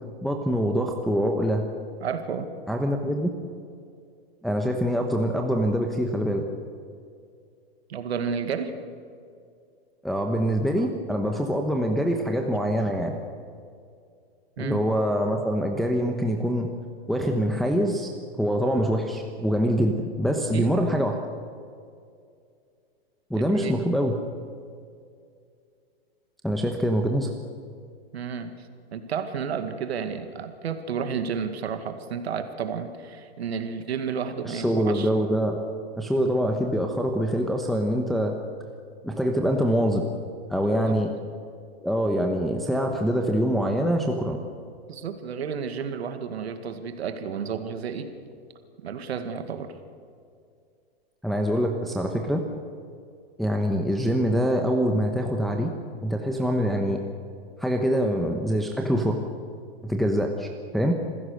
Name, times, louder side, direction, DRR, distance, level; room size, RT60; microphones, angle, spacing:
voice 1, 0.2-1.6 2.7-3.3 4.4-6.4 10.0-13.1 14.6-16.7 17.1-18.1 18.4-21.1 23.3-24.1 26.4-27.3 34.4-35.6 36.0-38.4 39.0-40.0 40.5-41.1 41.8-44.4 51.2-52.4 53.4-55.7 56.0-57.0 57.6-59.2 59.8-60.5 60.7-60.9, equal, ahead, 2 dB, 1.2 m, -24 dB
voice 2, 2.0-2.5 7.9-8.7 10.8-10.9 14.6-14.8 20.5-20.8 23.3-23.8 28.1-28.5 28.9-35.1 40.8-41.0 44.9-48.1 48.8-49.7, right 6 dB, 85° right, 8 dB, 2.0 m, -31 dB
27.5 x 15.5 x 6.6 m, 2.3 s
hypercardioid pair, 140°, 31 cm